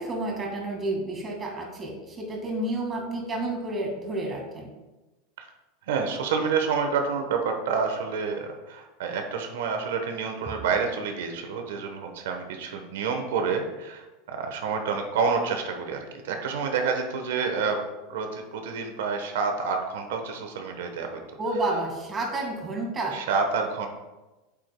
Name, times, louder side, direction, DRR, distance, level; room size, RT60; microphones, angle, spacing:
voice 1, 0.0-4.7 21.4-23.2, right 2 dB, 20° right, 0 dB, 1.8 m, -30 dB
voice 2, 5.9-17.8 18.1-21.2 23.1-23.9, right 5 dB, 85° right, 4 dB, 1.0 m, -28 dB
8.8 x 7.9 x 2.2 m, 1.1 s
supercardioid pair, 150°, 0 cm